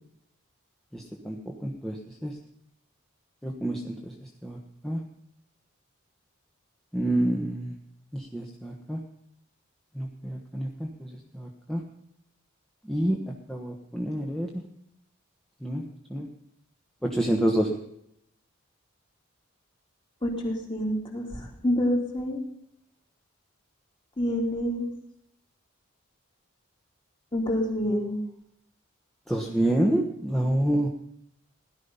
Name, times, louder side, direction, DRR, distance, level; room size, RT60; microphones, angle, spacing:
voice 1, 0.9-1.4 1.6-2.0 2.2-2.3 3.4-3.9 4.4-4.6 4.8-5.0 6.9-7.7 8.1-9.0 9.9-11.1 11.3-11.8 12.9-13.2 13.5-14.6 15.6-15.8 16.1-16.3 17.0-17.7 29.3-30.9, right 1 dB, ahead, 0 dB, 1.2 m, -27 dB
voice 2, 20.2-22.4 24.2-24.9 27.3-28.2, equal, 25° left, 0 dB, 3.2 m, -27 dB
17.0 x 12.0 x 5.6 m, 0.75 s
head